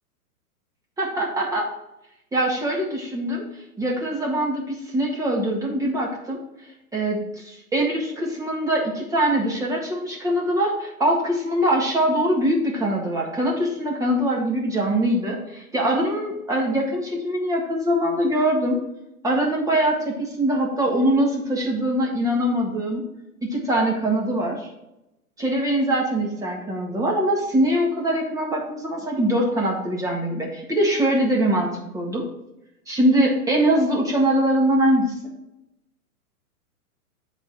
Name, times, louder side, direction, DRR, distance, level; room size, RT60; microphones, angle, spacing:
voice 1, 1.0-1.7 2.3-3.4 3.8-6.4 6.9-18.8 19.2-23.0 23.4-24.7 25.4-32.3 32.9-35.1, right 1 dB, 5° right, -1 dB, 1.6 m, -23 dB
9.6 x 4.1 x 4.5 m, 0.90 s
hypercardioid pair, 140°, 45 cm